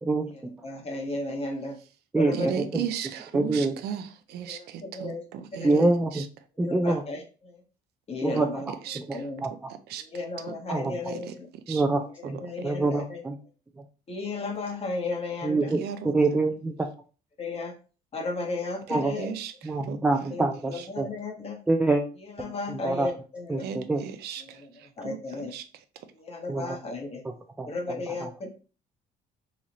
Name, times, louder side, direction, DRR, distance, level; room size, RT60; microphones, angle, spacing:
voice 1, 0.0-0.5 2.1-2.8 3.3-3.8 5.6-6.3 6.6-7.0 8.2-9.7 10.7-11.0 11.7-13.4 13.8-13.9 15.4-16.9 18.9-19.2 19.6-21.1 21.7-22.0 22.4-23.1 23.5-24.0 26.5-26.8 27.2-28.3, right 2 dB, 10° right, 0.3 m, -26 dB
voice 2, 0.6-1.7 2.2-2.6 4.5-4.6 4.9-5.2 5.5-5.9 6.6-7.2 8.1-8.6 9.1-9.4 10.1-11.3 12.4-13.2 14.1-15.6 17.4-17.7 18.1-19.3 20.3-21.6 22.4-23.6 25.0-25.5 26.3-27.2 27.7-28.5, left 3 dB, 35° left, 1.1 m, -33 dB
voice 3, 2.3-5.7 6.1-6.2 8.3-8.4 8.8-9.3 9.9-10.0 10.5-10.6 11.1-11.3 11.7-11.8 15.8-16.1 19.2-20.0 23.6-25.6, right 9 dB, 75° right, 0.5 m, -36 dB
3.1 x 2.4 x 4.0 m
cardioid pair, 110°, 17 cm